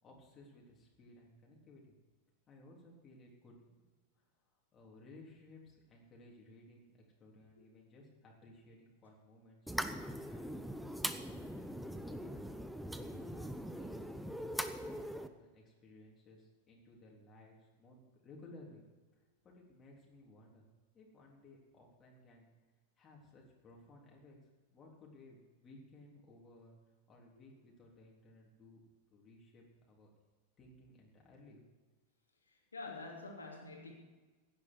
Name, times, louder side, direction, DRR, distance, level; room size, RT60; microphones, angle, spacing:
voice 1, 0.0-1.9 2.5-3.9 4.1-10.7 11.0-11.8 12.0-12.6 13.0-18.8 19.1-20.7 20.9-22.5 23.0-24.4 24.7-26.7 27.1-28.8 29.1-30.1 30.6-31.6, left 2 dB, 25° left, -2 dB, 3.6 m, -59 dB
sound 1, 9.7-15.3, equal, ahead, 0.8 m, -41 dB
voice 2, 32.5-33.9, left 3 dB, 75° left, 0 dB, 3.0 m, -47 dB
16.5 x 11.0 x 4.7 m, 1.3 s
figure-of-eight pair, 90°, 0 cm